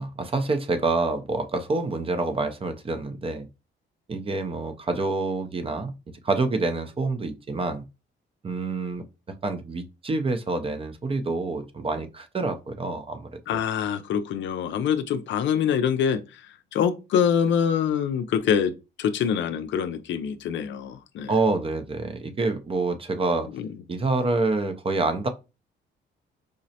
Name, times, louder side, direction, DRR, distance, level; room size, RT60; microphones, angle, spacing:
voice 1, 0.0-3.5 4.1-5.9 6.2-7.8 8.4-9.0 9.4-13.6 21.3-23.5 23.9-25.3, right 3 dB, 30° right, 0.5 m, -27 dB
voice 2, 13.5-16.2 16.7-18.7 19.0-21.3 23.5-23.7, left 8 dB, 70° left, 0.5 m, -25 dB
5.0 x 2.0 x 2.7 m
cardioid pair, 90°, 20 cm